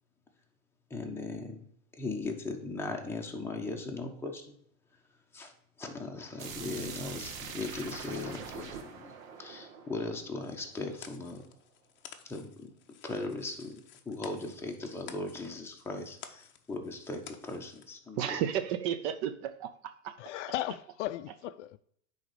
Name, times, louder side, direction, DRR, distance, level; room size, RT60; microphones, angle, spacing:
voice 1, 0.9-1.7 2.0-4.6 5.3-5.5 5.8-9.1 9.4-11.4 12.2-12.7 13.0-18.4, left 3 dB, 5° left, 1.2 m, -38 dB
sound 1, 6.4-11.1, right 6 dB, 70° right, 1.5 m, -44 dB
sound 2, 10.4-18.0, left 9 dB, 25° left, 0.8 m, -53 dB
voice 2, 18.2-20.1 20.7-20.8 21.3-21.4, right 9 dB, 40° right, 0.5 m, -33 dB
voice 3, 20.2-21.8, left 15 dB, 60° left, 0.5 m, -36 dB
9.9 x 4.1 x 5.0 m
supercardioid pair, 130°, 42 cm